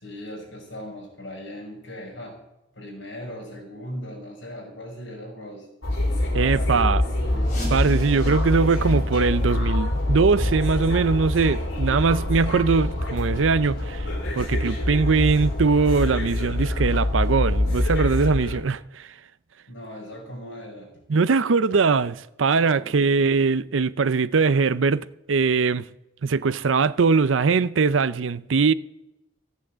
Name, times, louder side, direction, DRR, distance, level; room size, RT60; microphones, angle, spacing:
voice 1, 0.0-2.4 2.8-5.7 6.3-7.7 19.7-20.9 22.7-23.3, equal, 70° left, 5.5 m, -39 dB
sound 1, 5.8-18.6, left 1 dB, 90° left, 3.4 m, -25 dB
voice 2, 6.3-7.0 7.7-14.1 14.3-19.1 21.1-25.9 26.2-28.7, right 4 dB, 85° right, 0.6 m, -21 dB
sound 2, 7.4-13.0 13.3-13.5 14.0-14.1 14.7-14.8 15.3-15.4, equal, 40° left, 6.0 m, -43 dB
14.0 x 9.2 x 7.4 m
head